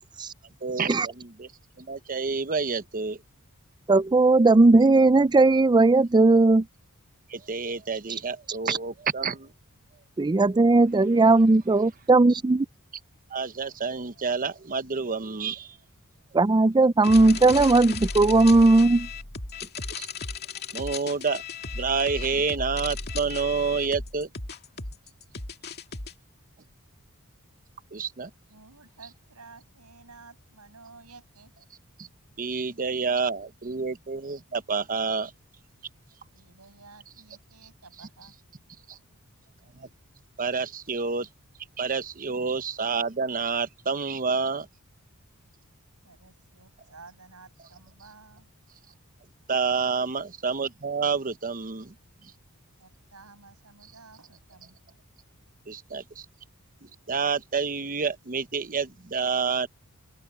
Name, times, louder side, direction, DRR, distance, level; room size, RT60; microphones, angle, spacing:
voice 1, 0.6-1.5 1.8-3.2 7.3-9.5 13.3-15.8 20.0-20.1 20.7-21.4 21.7-24.3 27.9-28.3 32.0-32.1 32.4-35.3 38.9-39.0 39.8-39.9 40.4-41.3 41.8-44.7 49.5-51.9 52.2-52.3 55.7-56.2 56.8-59.7, right 5 dB, 40° right, 0.9 m, -29 dB
voice 2, 3.9-6.7 10.2-12.7 16.3-19.1, right 2 dB, 20° right, 0.4 m, -18 dB
sound 1, 17.0-26.1, left 4 dB, 45° left, 2.3 m, -35 dB
voice 3, 28.5-31.5 36.3-38.3 38.9-39.0 46.0-48.5 52.8-54.8, right 4 dB, 80° right, 6.8 m, -52 dB
open air
head